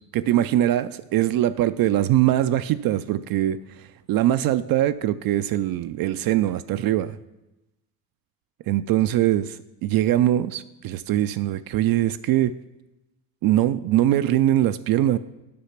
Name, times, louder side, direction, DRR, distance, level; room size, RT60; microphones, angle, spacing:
voice 1, 0.0-7.2 8.7-12.5 13.4-15.2, right 13 dB, 50° right, 12 dB, 0.4 m, -22 dB
8.6 x 5.7 x 5.8 m, 0.99 s
supercardioid pair, 70°, 45 cm